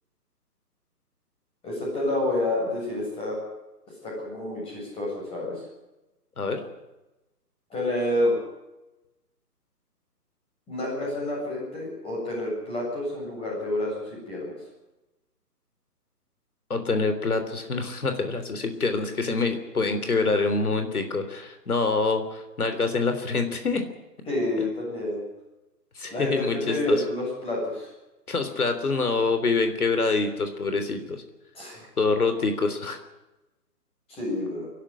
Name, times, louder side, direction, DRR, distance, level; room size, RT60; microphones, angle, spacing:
voice 1, 1.6-3.4 4.0-5.6 7.7-8.3 10.7-14.5 20.3-20.4 24.3-25.2 26.1-27.9 31.5-31.9 34.1-34.7, left 1 dB, 10° left, -3 dB, 7.6 m, -29 dB
voice 2, 16.7-23.9 26.0-27.0 28.3-31.2 32.0-33.0, left 3 dB, 65° left, 7 dB, 3.5 m, -26 dB
24.0 x 12.0 x 9.9 m, 1.0 s
figure-of-eight pair, 135°, 48 cm